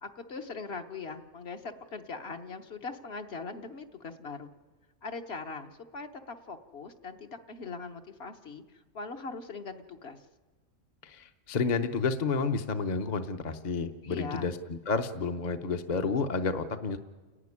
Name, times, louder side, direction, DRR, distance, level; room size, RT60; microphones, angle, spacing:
voice 1, 0.0-4.5 5.0-10.2 14.0-14.5, left 4 dB, 55° left, 6 dB, 1.3 m, -41 dB
voice 2, 11.0-17.0, left 4 dB, 40° left, 7 dB, 0.8 m, -30 dB
29.5 x 11.5 x 9.7 m, 1.3 s
omnidirectional pair, 1.3 m